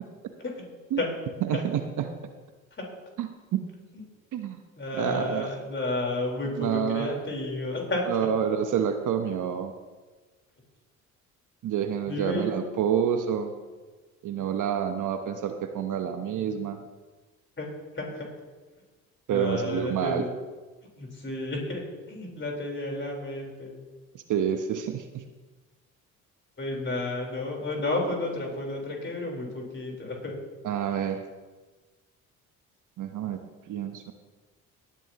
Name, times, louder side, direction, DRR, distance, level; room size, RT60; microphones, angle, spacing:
voice 1, 1.4-2.1 3.2-3.6 4.3-4.6 5.0-5.5 6.6-7.2 8.1-9.7 11.6-13.5 14.2-16.8 19.3-20.2 24.1-25.2 30.6-31.2 33.0-33.4 33.7-34.1, right 8 dB, 50° right, 7 dB, 1.0 m, -28 dB
voice 2, 4.8-8.0 12.1-12.6 17.6-17.7 17.9-18.3 19.3-20.3 21.0-23.8 26.6-30.4, left 2 dB, 30° left, 0 dB, 4.0 m, -32 dB
18.0 x 10.0 x 2.9 m, 1.3 s
hypercardioid pair, 55°, 41 cm